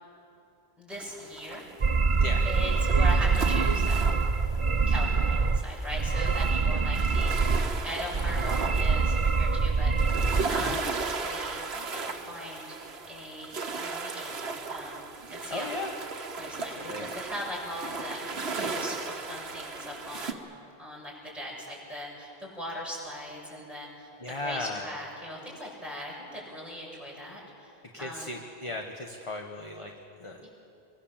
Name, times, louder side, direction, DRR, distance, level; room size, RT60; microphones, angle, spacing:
voice 1, 0.8-1.7 2.4-4.2 4.9-12.8 13.1-15.7 16.4-18.5 18.7-20.4 20.8-28.3 30.4-30.5, left 1 dB, ahead, -5 dB, 7.0 m, -40 dB
sound 1, 0.9-20.3, right 4 dB, 75° right, 1.6 m, -37 dB
sound 2, 1.8-5.6 5.9-7.8 8.1-10.4, right 4 dB, 35° right, 0.8 m, -25 dB
voice 2, 15.5-15.9 16.6-17.1 24.2-24.9 27.9-29.9 30.2-30.5, left 2 dB, 30° left, 3 dB, 1.4 m, -36 dB
26.5 x 23.0 x 7.4 m, 2.9 s
omnidirectional pair, 1.1 m